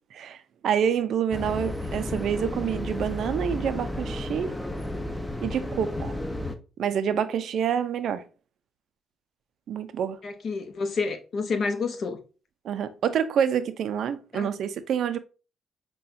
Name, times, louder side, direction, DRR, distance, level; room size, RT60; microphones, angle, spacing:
voice 1, 0.1-4.6 5.4-6.2 6.8-8.2 9.7-10.2 12.6-15.2, right 8 dB, 70° right, 0.4 m, -27 dB
sound 1, 1.3-6.6, left 1 dB, 5° left, 0.5 m, -32 dB
voice 2, 10.2-12.2 14.3-14.5, left 4 dB, 55° left, 0.7 m, -29 dB
5.5 x 2.3 x 2.5 m
cardioid pair, 90°, 0 cm